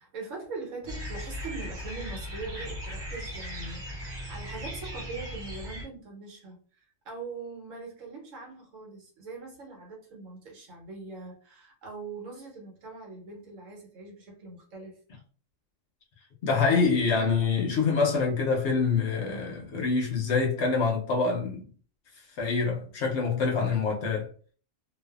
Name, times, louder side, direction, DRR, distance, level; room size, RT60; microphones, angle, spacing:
voice 1, 0.0-15.0, right 4 dB, 90° right, 1.2 m, -42 dB
sound 1, 0.9-5.9, equal, 45° right, 0.9 m, -38 dB
voice 2, 16.4-21.7 22.4-24.3, left 4 dB, 70° left, 0.9 m, -26 dB
2.5 x 2.3 x 2.3 m
omnidirectional pair, 1.3 m